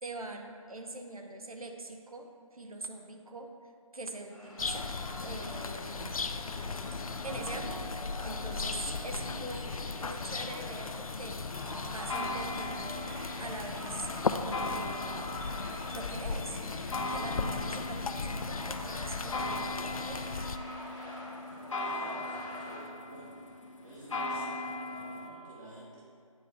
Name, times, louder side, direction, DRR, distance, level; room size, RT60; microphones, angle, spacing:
voice 1, 0.0-3.5 3.9-6.2 7.2-14.1 14.3-15.4 15.9-20.3 21.5-21.6, right 2 dB, 75° right, 3 dB, 0.8 m, -43 dB
sound 1, 4.3-22.8, left 1 dB, 5° left, 0.5 m, -46 dB
sound 2, 4.6-20.6, left 4 dB, 80° left, 0.4 m, -37 dB
sound 3, 7.3-25.3, left 2 dB, 60° left, 0.9 m, -40 dB
voice 2, 21.8-23.3 23.8-26.0, right 1 dB, 30° right, -8 dB, 0.8 m, -49 dB
9.6 x 3.3 x 3.7 m, 2.3 s
figure-of-eight pair, 155°, 18 cm